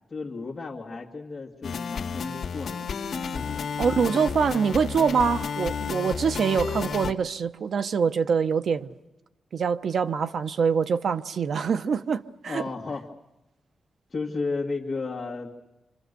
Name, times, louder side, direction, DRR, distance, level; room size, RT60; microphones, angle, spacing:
voice 1, 0.1-2.9 3.3-3.6 12.5-13.1 14.1-15.6, left 3 dB, 30° left, 2.2 m, -33 dB
sound 1, 1.6-7.1, left 6 dB, 65° left, 1.8 m, -32 dB
voice 2, 3.8-8.9 9.5-12.6, right 6 dB, 70° right, 0.9 m, -24 dB
27.0 x 26.5 x 6.9 m
wide cardioid pair, 120°, 0 cm